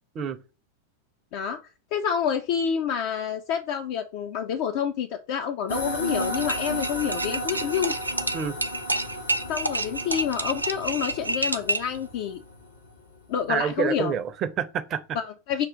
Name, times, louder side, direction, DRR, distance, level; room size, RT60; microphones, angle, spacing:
voice 1, 1.9-7.9 9.5-12.4 13.3-14.1 15.1-15.7, left 8 dB, 45° left, 0.4 m, -28 dB
sound 1, 5.7-13.3, left 1 dB, 75° left, 0.9 m, -34 dB
sound 2, 6.2-12.0, right 2 dB, 85° right, 0.4 m, -29 dB
voice 2, 13.5-15.2, right 7 dB, 30° right, 0.5 m, -28 dB
6.0 x 2.4 x 3.7 m
figure-of-eight pair, 90°, 0 cm